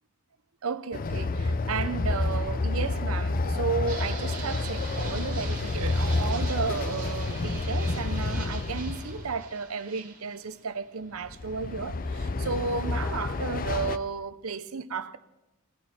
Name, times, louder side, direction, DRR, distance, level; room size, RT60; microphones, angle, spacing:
voice 1, 0.6-15.2, right 5 dB, 85° right, 0.7 m, -33 dB
Train, 0.9-9.4 11.2-14.0, left 2 dB, 40° left, 0.5 m, -29 dB
Fixed-wing aircraft airplane, 3.9-11.8, right 4 dB, 40° right, 2.2 m, -43 dB
17.5 x 12.0 x 4.4 m
head